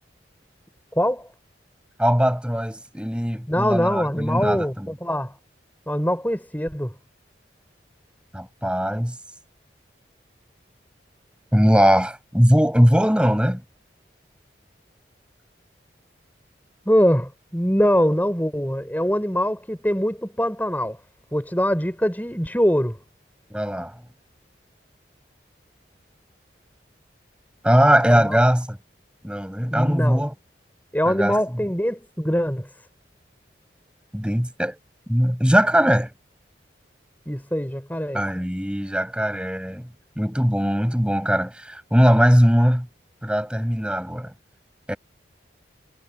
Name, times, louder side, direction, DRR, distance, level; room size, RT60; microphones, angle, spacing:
voice 1, 1.0-1.3 3.5-5.4 5.9-6.9 16.9-21.0 21.3-23.0 28.1-28.4 29.7-30.2 30.9-32.7 37.3-38.2, equal, 10° left, 5.2 m, -23 dB
voice 2, 2.0-4.9 8.3-9.2 11.5-13.6 23.5-23.9 27.6-28.8 29.2-30.3 31.0-31.4 34.1-34.8 35.1-36.1 38.1-39.9 40.2-42.9 43.2-44.3 44.9-45.0, equal, 5° right, 6.5 m, -20 dB
head